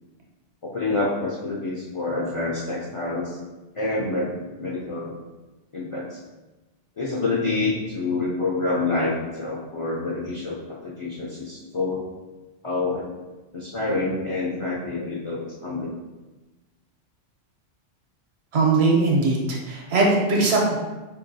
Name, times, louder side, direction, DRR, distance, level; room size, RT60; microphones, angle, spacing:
voice 1, 0.6-3.4 3.7-4.3 4.6-5.1 5.7-6.2 7.0-12.1 12.6-13.1 13.5-16.0, left 3 dB, 50° left, -5 dB, 0.4 m, -27 dB
voice 2, 18.5-20.8, right 3 dB, 65° right, -2 dB, 1.0 m, -20 dB
4.5 x 2.7 x 2.6 m, 1.2 s
omnidirectional pair, 1.2 m